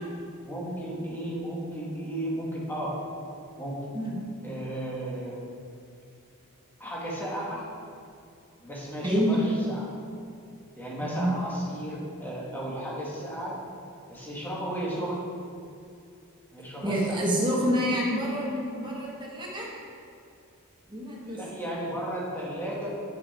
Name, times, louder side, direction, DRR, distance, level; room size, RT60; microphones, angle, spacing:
voice 1, 0.4-2.9 3.6-3.8 4.4-5.4 6.8-7.7 8.6-9.9 10.8-13.5 14.1-15.2 16.5-17.2 21.2-22.9, right 1 dB, 10° left, -6 dB, 1.7 m, -34 dB
voice 2, 9.0-9.4 11.0-11.3 16.8-19.7 20.9-21.4, equal, 20° right, -3 dB, 1.5 m, -27 dB
7.9 x 6.8 x 4.3 m, 2.5 s
head